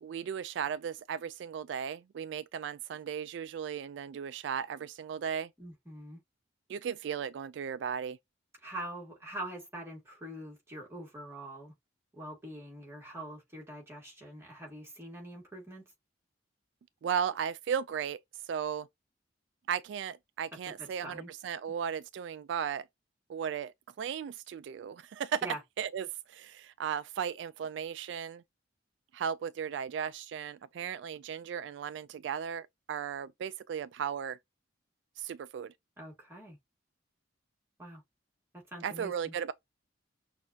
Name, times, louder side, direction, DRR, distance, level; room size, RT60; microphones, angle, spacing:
voice 1, 0.0-5.5 6.7-8.2 17.0-18.2 18.5-18.9 19.7-22.9 23.3-25.4 25.8-28.4 29.1-34.4 35.2-35.7 38.8-39.5, right 8 dB, 70° right, 0.3 m, -36 dB
voice 2, 5.6-6.2 8.6-11.7 12.1-15.8 20.8-21.3 25.4-25.6 36.0-36.6 37.8-38.0 38.5-39.3, right 1 dB, 15° right, 2.0 m, -44 dB
6.1 x 2.6 x 2.8 m
head